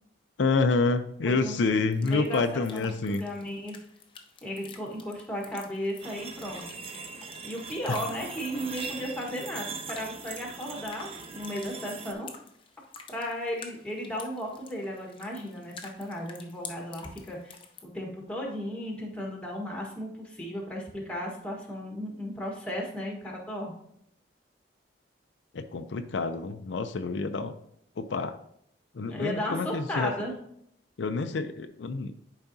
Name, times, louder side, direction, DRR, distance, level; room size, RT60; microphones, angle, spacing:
voice 1, 0.4-3.3 7.9-8.0 25.5-27.5 28.0-28.4 28.9-30.1 31.0-32.1, left 3 dB, 80° left, 8 dB, 0.5 m, -28 dB
voice 2, 1.3-1.6 2.0-3.8 4.4-6.6 7.4-12.3 13.1-17.6 17.8-23.8 29.1-30.4, equal, 5° left, -1 dB, 1.4 m, -35 dB
sound 1, 1.9-17.8, left 5 dB, 30° left, 0.7 m, -49 dB
sound 2, 6.0-12.1, right 4 dB, 30° right, 0.6 m, -41 dB
10.5 x 4.9 x 2.7 m, 0.71 s
head